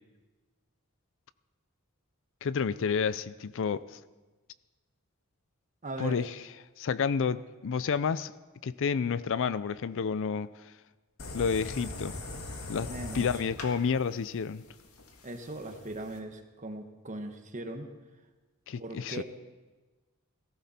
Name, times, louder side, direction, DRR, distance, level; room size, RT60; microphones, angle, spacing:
voice 1, 2.4-4.0 6.0-6.4 6.8-8.3 8.6-10.7 11.3-12.2 12.7-12.9 13.1-14.7 18.7-19.2, left 6 dB, 65° left, 16 dB, 0.4 m, -30 dB
voice 2, 5.8-6.2 12.9-13.3 15.2-17.9 18.8-19.2, right 2 dB, 35° right, 5 dB, 1.3 m, -39 dB
sound 1, 11.2-16.2, left 2 dB, 85° left, 1.8 m, -41 dB
17.5 x 15.0 x 4.3 m, 1.2 s
head